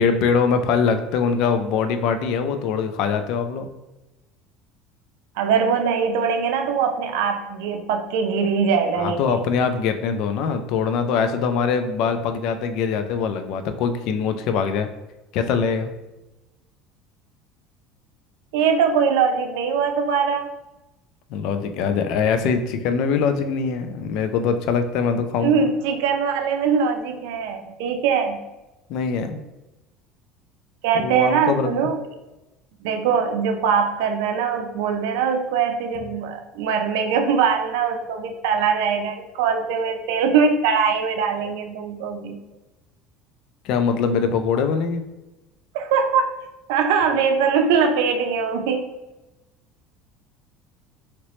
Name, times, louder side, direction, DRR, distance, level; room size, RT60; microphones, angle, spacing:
voice 1, 0.0-3.7 9.0-14.9 15.3-15.9 21.3-25.6 28.9-29.4 30.9-31.9 43.6-45.0, left 6 dB, 50° left, 8 dB, 0.3 m, -23 dB
voice 2, 5.4-9.4 18.5-20.5 25.3-28.4 30.8-32.0 32.8-42.4 45.7-46.3 46.7-48.9, right 6 dB, 85° right, 5 dB, 0.4 m, -22 dB
3.0 x 2.9 x 3.0 m, 1.0 s
cardioid pair, 170°, 0 cm